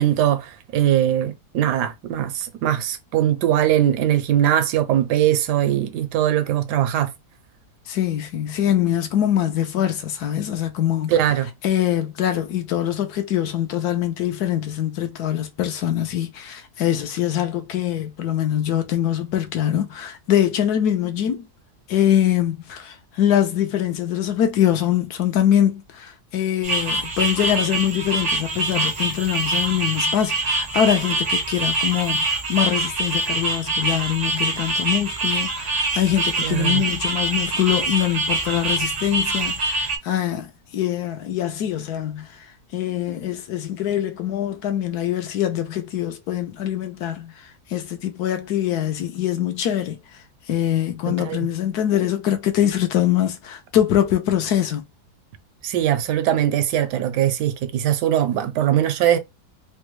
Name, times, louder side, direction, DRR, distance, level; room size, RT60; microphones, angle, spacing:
voice 1, 0.0-7.1 11.1-11.5 36.4-36.8 51.1-51.4 55.6-59.2, right 11 dB, 85° right, 1.2 m, -21 dB
voice 2, 7.9-11.1 11.6-21.5 21.9-42.3 42.7-47.3 47.7-50.0 50.5-54.8, left 11 dB, 75° left, 1.2 m, -23 dB
sound 1, 26.6-40.0, right 2 dB, 50° right, 0.5 m, -24 dB
3.4 x 2.2 x 3.0 m
omnidirectional pair, 1.7 m